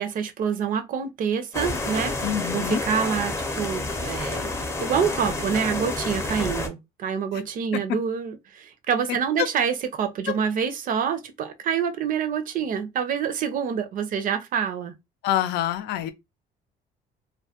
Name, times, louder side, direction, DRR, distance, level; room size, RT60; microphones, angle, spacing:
voice 1, 0.0-2.2 2.5-4.5 4.8-14.9, right 7 dB, 55° right, 0.5 m, -27 dB
sound 1, 1.5-6.7, left 2 dB, 15° left, 0.6 m, -29 dB
voice 2, 2.2-2.8 7.7-8.0 9.4-9.5 10.3-10.4 15.2-16.1, left 11 dB, 80° left, 0.5 m, -26 dB
2.2 x 2.1 x 2.8 m
cardioid pair, 110°, 17 cm